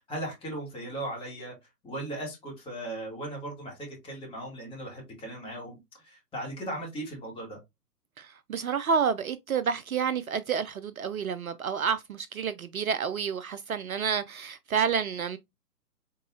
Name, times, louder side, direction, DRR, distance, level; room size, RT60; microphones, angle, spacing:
voice 1, 0.1-1.5 1.8-5.8 6.0-7.6, right 1 dB, 10° left, 2.1 m, -37 dB
voice 2, 8.2-15.4, right 6 dB, 60° right, 0.5 m, -29 dB
4.6 x 3.9 x 2.4 m
figure-of-eight pair, 120°, 49 cm